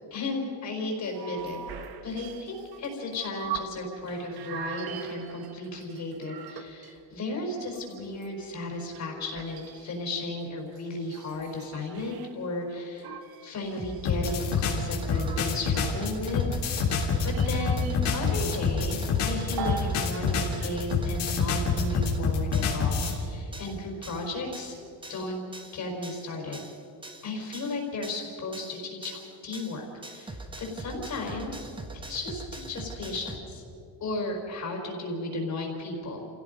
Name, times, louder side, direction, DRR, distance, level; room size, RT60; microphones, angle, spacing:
voice 1, 0.1-1.6 2.0-13.1 13.4-16.6 17.2-24.7 25.1-25.4 25.7-26.6 27.2-31.7 32.1-33.6 34.0-36.3, left 2 dB, 40° left, 1 dB, 4.7 m, -34 dB
sound 1, 1.0-3.8 4.1-7.2 7.6-12.3 13.0-16.0 16.8-18.3 18.6-20.1 20.4-20.8, right 8 dB, 60° right, 1.4 m, -41 dB
sound 2, 13.6-33.4, right 2 dB, 10° right, 1.2 m, -44 dB
sound 3, 14.1-23.2, left 5 dB, 75° left, 3.9 m, -27 dB
29.0 x 17.0 x 5.4 m, 2.7 s
cardioid pair, 160°, 43 cm